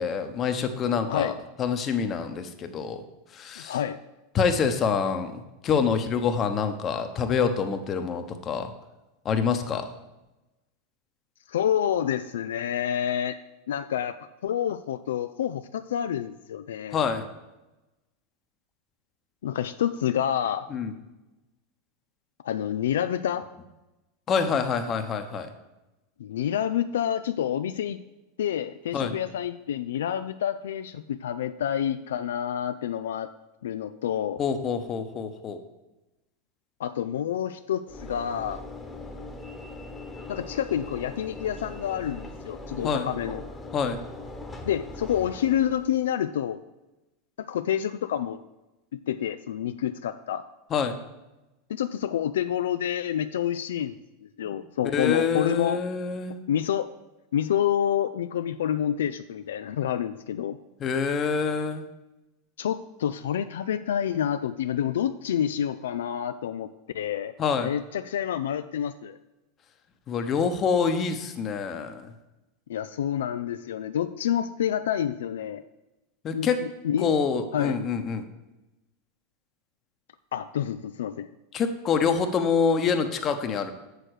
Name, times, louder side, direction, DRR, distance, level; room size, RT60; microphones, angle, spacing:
voice 1, 0.0-3.0 3.3-3.8 4.3-8.7 9.2-9.9 16.9-17.2 20.7-20.9 24.3-25.5 28.9-29.1 34.4-35.6 42.8-43.1 43.7-44.0 50.7-50.9 54.9-56.4 60.8-61.8 67.4-67.7 70.1-72.1 76.2-76.6 77.0-78.2 81.5-83.7, left 6 dB, 35° left, 8 dB, 1.0 m, -26 dB
voice 2, 3.6-4.0 11.5-13.4 13.7-14.2 14.4-17.0 19.4-20.7 22.4-23.5 26.2-28.0 28.4-33.3 33.6-34.4 36.8-38.6 40.3-43.4 44.7-46.6 47.4-48.4 48.9-50.4 51.7-54.0 54.4-55.8 56.5-56.9 57.3-60.6 62.6-66.7 66.9-67.3 67.6-69.2 72.7-75.6 76.3-77.1 77.5-77.8 80.3-81.3, left 10 dB, 80° left, 11 dB, 0.3 m, -28 dB
Train / Engine / Alarm, 37.9-46.1, left 2 dB, 10° left, 1.2 m, -40 dB
7.5 x 6.4 x 4.9 m, 1.0 s
hypercardioid pair, 100°, 0 cm